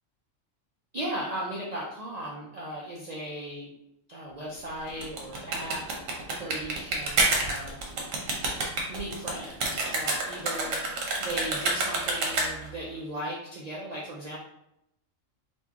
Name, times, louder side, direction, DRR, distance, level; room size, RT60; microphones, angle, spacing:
voice 1, 0.9-3.7 4.1-5.8 6.4-7.8 8.9-10.9 11.2-14.4, right 1 dB, 50° right, -4 dB, 0.5 m, -37 dB
sound 1, 4.9-12.8, right 2 dB, 90° right, 1.2 m, -28 dB
4.3 x 2.3 x 2.8 m, 0.82 s
omnidirectional pair, 1.3 m